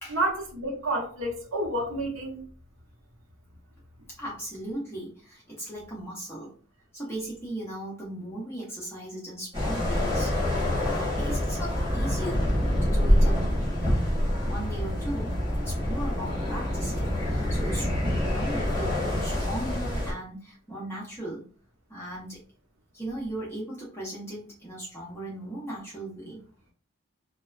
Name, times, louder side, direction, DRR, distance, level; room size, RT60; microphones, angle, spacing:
voice 1, 0.1-2.5, right 1 dB, 75° right, 0.8 m, -29 dB
voice 2, 4.2-6.5 6.9-12.5 12.8-14.0 14.4-15.3 15.6-21.4 21.9-22.4 22.9-26.4, right 1 dB, 10° left, 0.7 m, -37 dB
sound 1, 9.5-20.1, left 1 dB, 25° right, 1.1 m, -26 dB
2.7 x 2.1 x 2.4 m
head